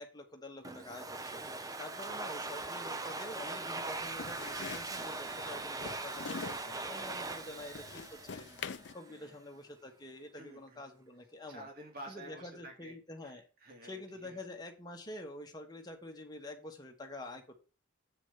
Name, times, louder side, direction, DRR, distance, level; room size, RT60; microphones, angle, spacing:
voice 1, 0.0-11.7 12.1-13.4 13.8-17.5, left 2 dB, 20° left, 3 dB, 1.5 m, -47 dB
Domestic sounds home sounds, 0.6-9.1, right 3 dB, 15° right, 0.6 m, -41 dB
sound 1, 3.9-8.9, left 5 dB, 55° left, 0.5 m, -46 dB
voice 2, 6.4-7.7 9.1-9.4 10.3-10.8 11.5-13.0 13.2-14.4, right 1 dB, 45° right, 1 dB, 2.6 m, -51 dB
7.9 x 5.1 x 6.6 m, 0.33 s
head